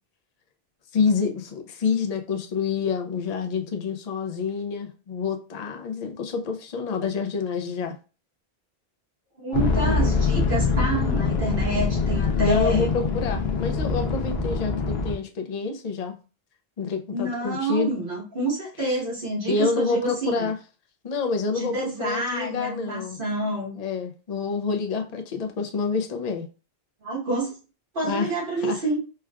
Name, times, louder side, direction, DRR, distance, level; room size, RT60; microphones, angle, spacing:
voice 1, 0.9-7.9 12.4-16.1 16.8-18.0 18.9-19.0 19.5-20.6 21.0-23.2 23.7-26.5 28.0-28.3 28.6-28.8, left 5 dB, 50° left, 5 dB, 0.5 m, -27 dB
voice 2, 9.4-12.9 17.1-20.5 21.5-23.8 27.0-27.6 27.9-29.0, right 2 dB, 60° right, -5 dB, 1.4 m, -28 dB
sound 1, 9.5-15.1, left 4 dB, 80° left, 0.9 m, -24 dB
4.4 x 2.3 x 2.3 m, 0.34 s
omnidirectional pair, 1.0 m